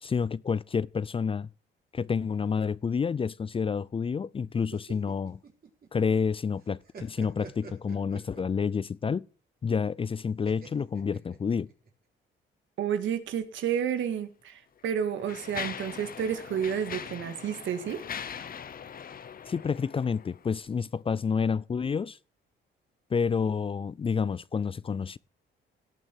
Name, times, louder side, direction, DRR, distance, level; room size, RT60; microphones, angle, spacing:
voice 1, 0.0-1.5 1.9-5.4 5.9-9.3 9.6-11.7 19.5-22.2 23.1-25.2, left 6 dB, 25° left, 0.4 m, -29 dB
sound 1, 4.5-6.3 6.6-8.8 10.4-11.9, right 6 dB, 50° right, 4.0 m, -47 dB
voice 2, 12.8-18.0, right 8 dB, 75° right, 1.9 m, -31 dB
Mechanisms, 13.9-14.0 14.8-20.5, left 8 dB, 45° left, 1.0 m, -41 dB
17.5 x 6.2 x 4.6 m
cardioid pair, 90°, 20 cm